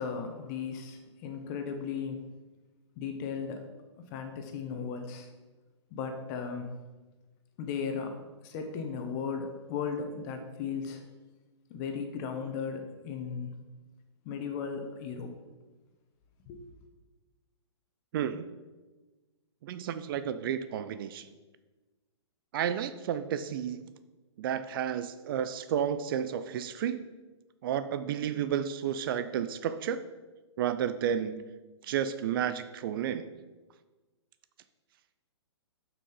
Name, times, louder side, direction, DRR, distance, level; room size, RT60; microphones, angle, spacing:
voice 1, 0.0-2.3 3.0-3.6 4.1-5.3 5.9-6.7 7.6-8.2 8.4-11.0 11.7-13.6 14.2-15.3 16.5-16.7, left 6 dB, 40° left, 5 dB, 1.4 m, -36 dB
voice 2, 18.1-18.4 19.6-21.2 22.5-23.8 24.4-27.1 27.6-30.0 30.6-31.5 31.9-33.3, right 9 dB, 50° right, 12 dB, 0.6 m, -31 dB
7.7 x 6.0 x 5.6 m, 1.2 s
hypercardioid pair, 120°, 15 cm